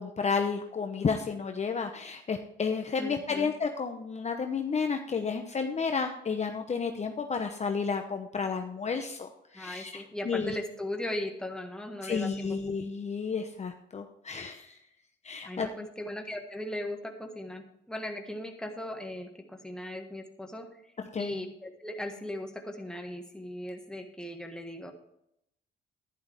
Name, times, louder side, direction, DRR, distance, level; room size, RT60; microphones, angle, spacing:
voice 1, 0.0-9.3 9.5-10.5 12.0-14.7 15.2-15.7 21.1-21.4, left 5 dB, 35° left, 5 dB, 0.8 m, -31 dB
voice 2, 3.0-3.5 9.5-12.6 15.4-20.7 21.2-24.9, left 1 dB, 5° left, 3 dB, 1.6 m, -38 dB
11.0 x 10.5 x 3.5 m, 0.79 s
cardioid pair, 90°, 20 cm